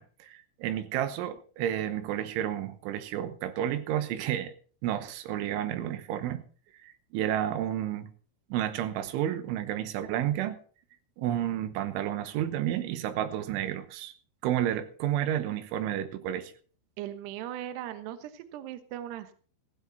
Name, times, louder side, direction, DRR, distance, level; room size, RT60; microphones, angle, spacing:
voice 1, 0.0-4.5 4.8-6.4 6.8-8.1 8.5-10.6 11.2-14.1 14.4-16.5, right 11 dB, 90° right, 3.5 m, -31 dB
voice 2, 17.0-19.3, right 12 dB, 70° right, 3.0 m, -38 dB
15.5 x 15.5 x 4.0 m
omnidirectional pair, 5.5 m